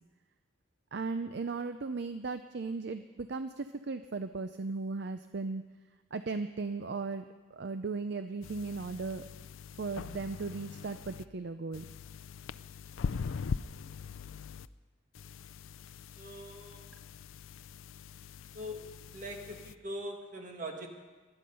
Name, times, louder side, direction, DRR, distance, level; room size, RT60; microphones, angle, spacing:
voice 1, 0.9-5.6 6.1-7.2 7.5-9.2 9.8-11.9, right 4 dB, 55° right, 10 dB, 0.5 m, -36 dB
sound 1, 8.4-11.2 11.7-14.7 15.2-19.7, left 5 dB, 75° left, 0.4 m, -42 dB
voice 2, 16.2-16.9 18.5-20.9, equal, 40° right, 2 dB, 1.9 m, -42 dB
19.5 x 11.5 x 5.4 m, 1.3 s
head